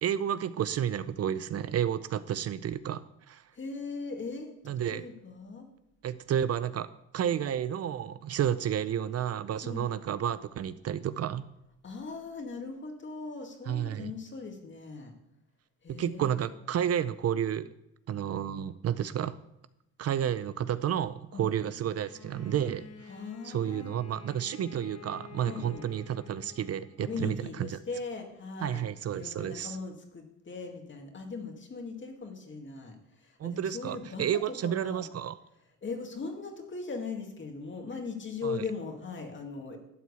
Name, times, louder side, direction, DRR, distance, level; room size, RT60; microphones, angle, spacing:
voice 1, 0.0-3.4 4.7-5.0 6.0-6.9 7.1-11.4 13.7-14.1 15.9-17.7 18.1-19.3 20.0-22.8 23.4-27.8 28.6-29.8 33.4-35.3 38.4-38.6, right 9 dB, 55° right, 14 dB, 0.6 m, -31 dB
voice 2, 3.5-5.7 9.6-9.8 11.8-15.1 15.8-16.5 21.3-21.5 23.1-23.9 25.4-25.9 27.0-28.9 29.1-35.0 35.8-39.8, left 4 dB, 40° left, 4 dB, 2.2 m, -39 dB
Bowed string instrument, 22.0-27.1, left 5 dB, 55° left, 1.4 m, -50 dB
12.5 x 4.6 x 8.4 m, 0.82 s
cardioid pair, 90°, 30 cm